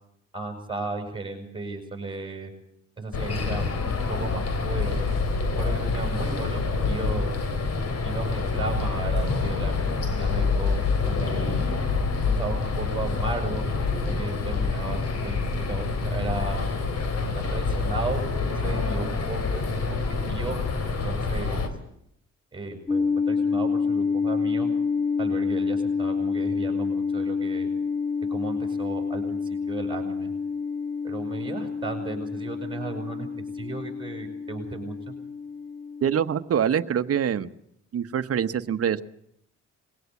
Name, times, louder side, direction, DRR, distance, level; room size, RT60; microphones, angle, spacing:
voice 1, 0.3-2.5 3.0-5.1 5.5-7.3 8.0-11.8 12.2-13.6 14.1-15.4 15.7-16.6 17.3-20.0 20.3-21.7 22.5-24.7 25.2-27.7 28.3-30.3 31.0-33.3 33.5-35.1, right 3 dB, 15° right, 4 dB, 7.2 m, -35 dB
sound 1, 3.1-21.7, left 4 dB, 55° left, 3.6 m, -27 dB
sound 2, 22.9-36.4, left 5 dB, 15° left, 2.9 m, -28 dB
voice 2, 36.0-37.5 37.9-39.0, right 8 dB, 50° right, 10 dB, 1.2 m, -25 dB
22.5 x 17.0 x 8.4 m, 0.74 s
cardioid pair, 90°, 30 cm